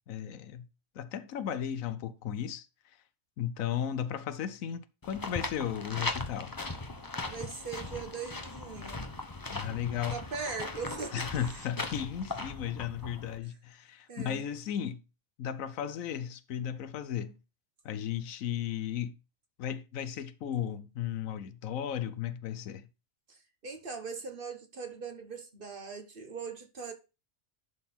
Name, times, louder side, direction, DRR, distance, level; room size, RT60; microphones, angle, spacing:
voice 1, 0.1-0.7 0.9-2.7 3.4-6.6 9.5-10.2 11.1-15.0 15.4-17.4 17.8-19.2 19.6-22.9, left 9 dB, 80° left, 1.1 m, -35 dB
sound 1, 5.0-13.4, left 2 dB, 20° left, 0.8 m, -39 dB
voice 2, 7.3-9.1 10.1-11.6 14.1-14.4 23.3-26.9, right 5 dB, 40° right, 1.3 m, -40 dB
11.0 x 4.0 x 4.3 m
omnidirectional pair, 1.4 m